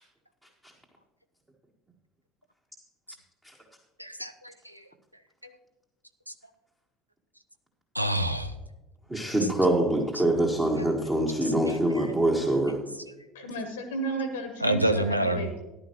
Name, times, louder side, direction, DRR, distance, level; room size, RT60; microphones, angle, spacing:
voice 1, 4.0-4.8 7.9-8.5 9.4-9.5 10.1-10.2 10.8-10.9 11.4-12.1 14.6-15.6, right 1 dB, 90° right, 9 dB, 0.5 m, -28 dB
voice 2, 9.1-12.8, right 1 dB, 15° right, 0 dB, 1.5 m, -24 dB
voice 3, 13.3-15.5, right 2 dB, 70° left, 7 dB, 1.0 m, -34 dB
13.5 x 11.0 x 3.1 m, 1.1 s
figure-of-eight pair, 65°, 0 cm